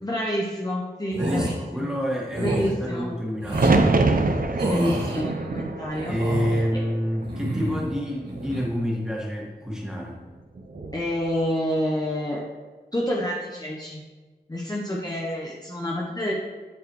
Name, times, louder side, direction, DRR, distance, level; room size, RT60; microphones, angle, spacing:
voice 1, 0.0-1.9 2.4-3.1 4.6-6.8 10.9-12.4 12.9-14.0 14.5-16.3, equal, 25° left, -3 dB, 0.9 m, -28 dB
voice 2, 1.1-3.8 6.1-10.2, equal, 5° right, -4 dB, 1.9 m, -28 dB
sound 1, 1.1-1.6 2.3-2.7 3.4-3.7 4.6-5.2 5.9-6.6 7.2-7.9 8.3-8.7, right 1 dB, 75° right, 2.0 m, -28 dB
sound 2, 3.5-7.6 7.9-8.7 10.6-11.0, right 3 dB, 55° right, 0.6 m, -25 dB
10.5 x 4.7 x 3.1 m, 1.3 s
wide cardioid pair, 75°, 17 cm